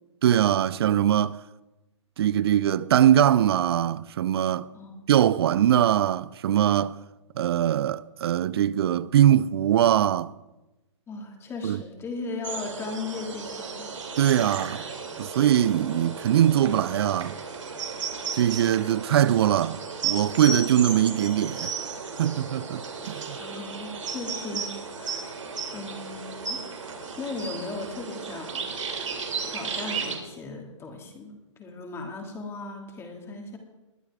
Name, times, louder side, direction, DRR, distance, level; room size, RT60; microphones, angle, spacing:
voice 1, 0.2-1.4 2.2-4.7 5.1-7.0 7.4-10.3 11.6-11.8 14.2-14.9 15.2-17.4 18.3-21.7 22.2-23.4, right 11 dB, 50° right, 0.5 m, -22 dB
voice 2, 11.1-13.9 23.4-24.7 25.0-25.4 25.7-26.6 27.2-28.9 29.4-33.6, left 3 dB, 15° left, 2.4 m, -37 dB
sound 1, 12.4-30.2, right 5 dB, 75° right, 3.0 m, -34 dB
21.0 x 12.0 x 3.6 m
hypercardioid pair, 130°, 16 cm